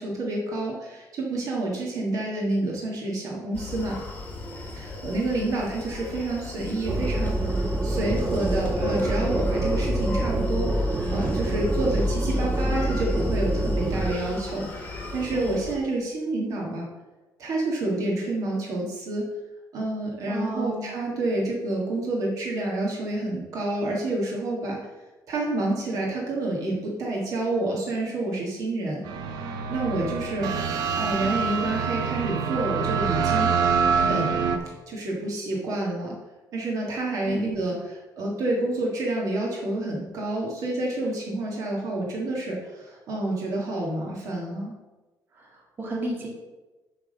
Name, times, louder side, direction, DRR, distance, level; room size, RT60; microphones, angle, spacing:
voice 1, 0.0-4.0 4.7-16.9 17.4-19.3 19.7-24.8 25.3-29.0 29.3-30.7 30.9-33.5 33.9-34.4 34.9-36.2 36.5-44.7, right 2 dB, 55° right, -2 dB, 1.5 m, -29 dB
Screaming, 3.5-15.8, left 2 dB, 20° left, 1.3 m, -36 dB
sound 1, 6.9-14.1, right 1 dB, 15° right, 0.3 m, -26 dB
voice 2, 20.3-20.9 37.2-37.6 45.3-46.3, right 1 dB, 30° right, -2 dB, 1.7 m, -33 dB
sound 2, 29.0-34.6, right 6 dB, 80° right, 0.8 m, -25 dB
8.0 x 3.5 x 6.5 m, 1.1 s
cardioid pair, 170°, 7 cm